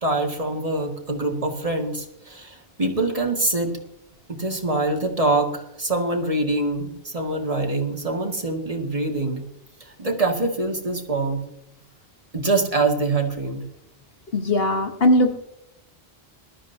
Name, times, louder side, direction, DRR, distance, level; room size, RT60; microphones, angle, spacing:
voice 1, 0.0-3.7 4.3-9.5 9.8-11.4 12.3-13.7, right 2 dB, 35° right, 2 dB, 2.0 m, -24 dB
voice 2, 14.3-15.3, left 1 dB, 70° left, 6 dB, 1.5 m, -19 dB
21.0 x 13.0 x 2.7 m, 0.83 s
omnidirectional pair, 1.0 m